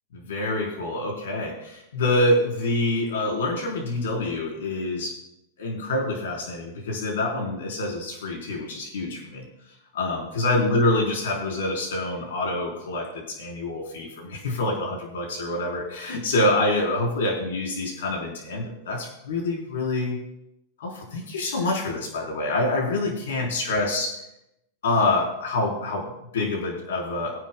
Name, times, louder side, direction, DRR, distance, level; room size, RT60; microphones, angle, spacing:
voice 1, 0.1-5.1 5.6-9.4 9.9-20.2 20.8-24.1 24.8-27.4, left 2 dB, 85° left, -1 dB, 4.1 m, -26 dB
23.0 x 10.0 x 2.3 m, 0.83 s
supercardioid pair, 145°, 0 cm